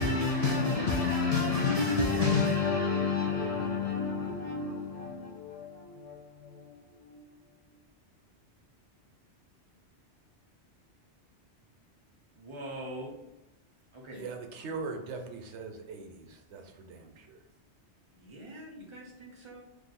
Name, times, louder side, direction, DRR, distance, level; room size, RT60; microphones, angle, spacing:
voice 1, 0.0-7.2, left 4 dB, 55° left, 0.4 m, -29 dB
voice 2, 12.4-13.1 13.9-14.3 18.1-19.6, right 1 dB, 30° right, 0.6 m, -43 dB
voice 3, 14.1-17.4, right 4 dB, 85° right, 0.9 m, -41 dB
2.5 x 2.4 x 4.1 m
omnidirectional pair, 1.2 m